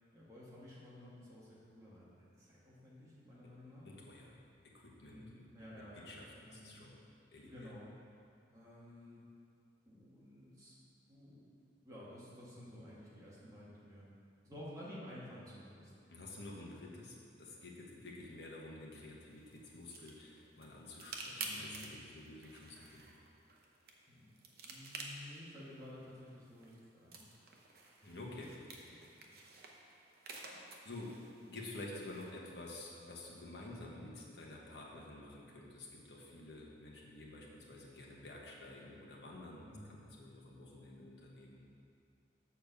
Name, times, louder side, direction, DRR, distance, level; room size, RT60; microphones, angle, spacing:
voice 1, 0.1-3.8 5.0-6.7 7.4-7.9 8.5-9.2 9.8-10.7 11.1-11.5 11.8-14.0 14.4-15.9 21.4-21.9 24.1-24.3 24.6-27.2 28.8-29.3 39.6-39.9, left 1 dB, 20° right, -8 dB, 1.7 m, -53 dB
voice 2, 3.8-4.4 4.7-5.4 5.7-7.0 7.3-7.7 16.1-23.1 28.0-29.0 30.8-31.1 31.5-41.7, left 2 dB, 65° left, -2 dB, 1.2 m, -50 dB
sound 1, 19.3-32.3, right 3 dB, 55° right, 0.8 m, -51 dB
7.0 x 4.4 x 6.7 m, 2.4 s
head